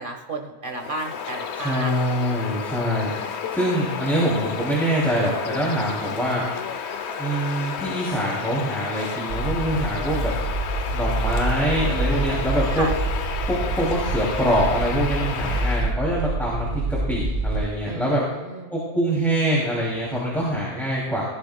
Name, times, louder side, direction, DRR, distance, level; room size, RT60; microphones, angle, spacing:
voice 1, 0.0-1.9 12.8-12.9 17.9-18.7, right 2 dB, 50° right, 3 dB, 1.5 m, -32 dB
Bird vocalization bird call bird song, 0.7-16.0, left 7 dB, 75° left, 1.0 m, -32 dB
voice 2, 1.5-3.1 3.5-6.4 7.2-10.3 10.9-12.9 13.4-18.2 18.7-21.2, equal, ahead, -6 dB, 2.6 m, -24 dB
sound 1, 9.3-17.7, right 2 dB, 85° right, 1.9 m, -27 dB
17.5 x 13.0 x 2.2 m, 1.2 s
omnidirectional pair, 1.2 m